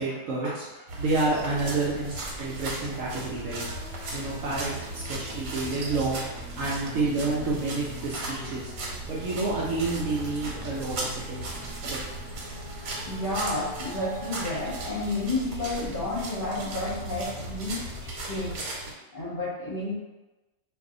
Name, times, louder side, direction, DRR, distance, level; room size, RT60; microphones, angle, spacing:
voice 1, 0.0-3.6 4.1-8.7 9.1-11.0 11.3-12.0, right 3 dB, 65° right, -5 dB, 0.8 m, -29 dB
sound 1, 0.9-18.9, right 2 dB, 90° right, 1.3 m, -38 dB
sound 2, 2.2-18.6, right 1 dB, 75° left, 1.1 m, -42 dB
Female singing, 3.2-6.9 8.1-14.9, right 2 dB, ahead, 1.1 m, -48 dB
voice 2, 13.0-18.6 19.1-20.0, left 2 dB, 40° left, -8 dB, 0.8 m, -31 dB
2.6 x 2.4 x 3.7 m, 1.1 s
omnidirectional pair, 1.7 m